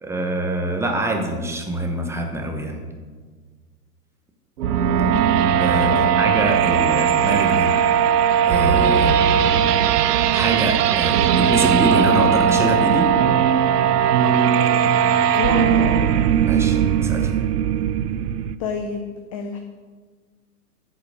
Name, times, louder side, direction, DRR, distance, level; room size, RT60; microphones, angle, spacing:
voice 1, 0.0-2.9 5.4-7.7 8.4-9.1 10.3-13.1 16.4-17.3, right 1 dB, 5° right, 2 dB, 0.8 m, -25 dB
sound 1, 4.6-18.6, right 8 dB, 80° right, 0.6 m, -18 dB
voice 2, 15.4-16.0 18.6-19.0 19.3-19.6, left 5 dB, 25° left, 5 dB, 0.4 m, -28 dB
8.5 x 4.7 x 6.3 m, 1.5 s
hypercardioid pair, 115°, 47 cm